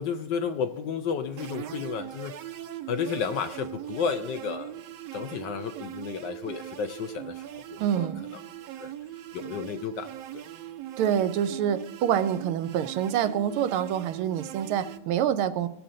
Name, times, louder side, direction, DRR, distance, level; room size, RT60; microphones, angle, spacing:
voice 1, 0.0-2.3 2.9-4.7 5.1-8.1 8.8-8.9 9.3-10.4, left 6 dB, 70° left, 8 dB, 1.1 m, -32 dB
sound 1, 1.4-15.0, right 12 dB, 70° right, 1.0 m, -40 dB
voice 2, 7.8-8.2 11.0-15.7, right 9 dB, 85° right, 12 dB, 1.5 m, -26 dB
18.0 x 7.1 x 3.7 m, 0.84 s
omnidirectional pair, 2.3 m